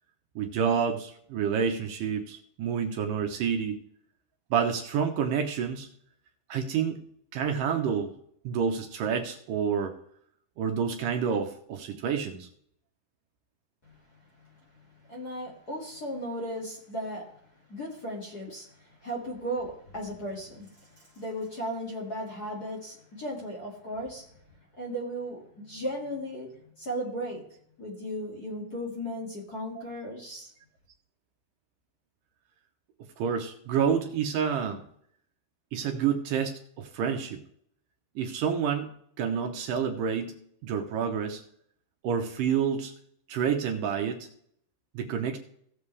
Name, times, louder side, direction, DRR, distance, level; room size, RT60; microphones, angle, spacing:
voice 1, 0.4-3.8 4.5-5.9 6.5-7.0 7.3-8.1 8.4-10.0 10.6-12.5 33.2-34.8 35.7-37.4 38.2-38.9 39.2-40.4 40.6-41.4 42.0-42.9 43.3-44.3 44.9-45.4, right 7 dB, 70° right, 4 dB, 2.2 m, -28 dB
voice 2, 15.1-17.2 17.7-24.2 24.8-26.5 26.8-27.4 27.8-30.5, equal, 30° left, -2 dB, 2.1 m, -36 dB
17.0 x 7.1 x 3.3 m, 0.66 s
omnidirectional pair, 4.4 m